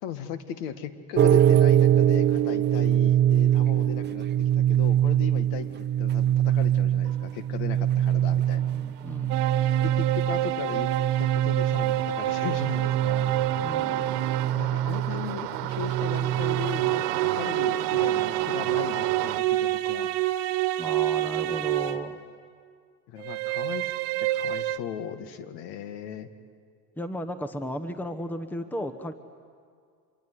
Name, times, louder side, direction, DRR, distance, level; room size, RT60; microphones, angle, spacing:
voice 1, 0.0-5.7 6.0-8.7 9.8-10.9 11.2-13.3 14.5-20.1 23.1-26.3, left 8 dB, 60° left, 10 dB, 2.0 m, -37 dB
sound 1, 1.2-17.0, right 11 dB, 25° right, 0.6 m, -24 dB
sound 2, 7.1-7.3 7.7-19.4, right 14 dB, 85° right, 1.3 m, -36 dB
voice 2, 8.7-9.5 13.6-14.2 20.8-22.2 27.0-29.1, equal, 5° left, 10 dB, 1.1 m, -35 dB
sound 3, 9.3-14.7 15.7-22.2 23.2-24.8, right 14 dB, 60° right, 1.4 m, -28 dB
26.0 x 23.0 x 9.6 m, 2.2 s
supercardioid pair, 125°, 46 cm